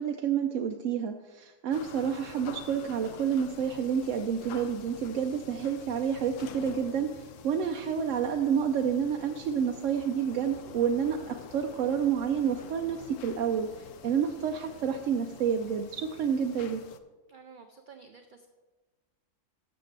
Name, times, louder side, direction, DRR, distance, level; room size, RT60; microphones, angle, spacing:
voice 1, 0.0-16.8, right 7 dB, 80° right, 4 dB, 0.9 m, -29 dB
sound 1, 1.7-17.0, left 8 dB, 85° left, 1.0 m, -47 dB
voice 2, 17.3-18.5, right 5 dB, 55° right, 6 dB, 0.6 m, -51 dB
13.0 x 6.7 x 3.2 m, 1.3 s
omnidirectional pair, 1.3 m